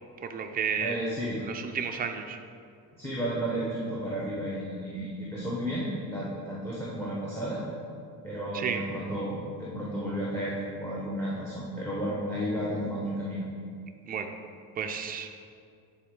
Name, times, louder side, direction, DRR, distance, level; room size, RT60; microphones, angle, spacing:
voice 1, 0.2-1.0 1.4-2.4 8.5-8.8 14.1-14.4 14.8-15.3, right 7 dB, 25° right, 5 dB, 0.4 m, -32 dB
voice 2, 0.8-1.4 2.9-7.6 8.2-13.4, equal, 5° left, -7 dB, 0.9 m, -32 dB
9.2 x 4.1 x 3.7 m, 2.3 s
cardioid pair, 150°, 38 cm